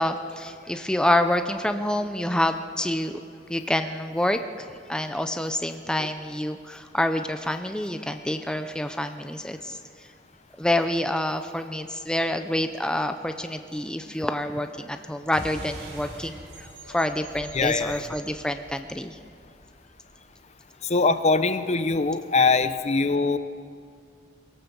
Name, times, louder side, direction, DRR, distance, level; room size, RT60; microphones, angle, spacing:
voice 1, 0.0-3.2 3.5-10.1 10.6-19.2, left 1 dB, 5° left, 7 dB, 0.6 m, -27 dB
sound 1, 15.3-20.2, right 1 dB, 60° right, 4.4 m, -43 dB
voice 2, 17.5-18.0 20.8-23.4, left 3 dB, 40° left, 11 dB, 0.8 m, -22 dB
22.0 x 17.5 x 7.1 m, 2.2 s
head